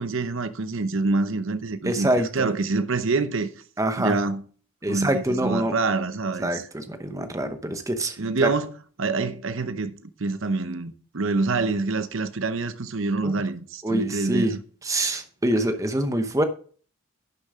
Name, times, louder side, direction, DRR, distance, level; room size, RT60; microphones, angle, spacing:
voice 1, 0.0-3.5 4.0-4.4 4.9-6.7 8.2-8.7 9.0-14.6, right 3 dB, 60° right, 0.8 m, -26 dB
voice 2, 1.8-2.5 3.8-4.2 4.8-5.7 6.4-8.5 13.2-13.3 13.8-14.6 14.8-16.4, right 1 dB, 15° right, 0.8 m, -25 dB
11.5 x 6.8 x 3.6 m
head